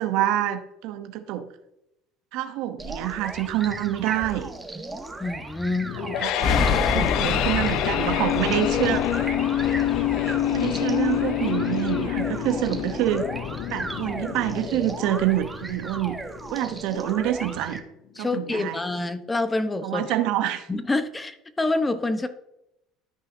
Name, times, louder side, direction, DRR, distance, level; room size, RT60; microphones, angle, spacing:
voice 1, 0.0-1.5 2.3-4.5 6.0-9.0 10.0-10.1 10.5-13.3 13.7-16.2 16.5-17.8 18.2-18.8 19.8-20.7, right 12 dB, 70° right, 8 dB, 0.8 m, -27 dB
sound 1, 2.8-17.8, right 2 dB, 15° right, 1.3 m, -36 dB
voice 2, 4.9-6.0 6.9-7.4 18.1-20.1 20.7-22.3, left 2 dB, 15° left, 10 dB, 0.8 m, -27 dB
sound 2, 5.9-16.9, left 13 dB, 65° left, 0.4 m, -27 dB
sound 3, 6.4-15.0, left 5 dB, 45° left, 0.9 m, -30 dB
13.0 x 5.6 x 2.7 m, 0.85 s
hypercardioid pair, 80°, 0 cm